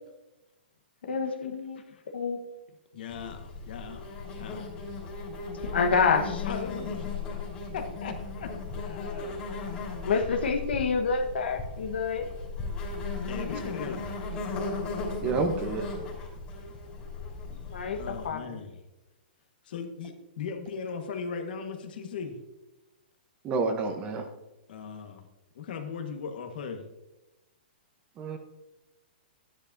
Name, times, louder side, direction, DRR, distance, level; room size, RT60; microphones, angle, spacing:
voice 1, 1.1-1.8 2.1-2.4 4.3-4.5 5.6-6.4 10.0-12.3 17.7-18.5, left 5 dB, 85° left, 5 dB, 1.3 m, -28 dB
voice 2, 2.9-4.7 6.4-7.4 7.7-9.4 13.3-14.5 18.0-18.8 19.6-22.4 24.7-25.2 25.5-26.8, left 6 dB, 60° left, 5 dB, 1.5 m, -38 dB
Insect, 3.1-18.3, left 4 dB, 20° left, 2.8 m, -36 dB
voice 3, 15.2-15.9 23.4-24.2 28.2-28.4, right 4 dB, 20° right, 6 dB, 0.9 m, -29 dB
12.0 x 10.0 x 2.7 m, 1.0 s
hypercardioid pair, 160°, 6 cm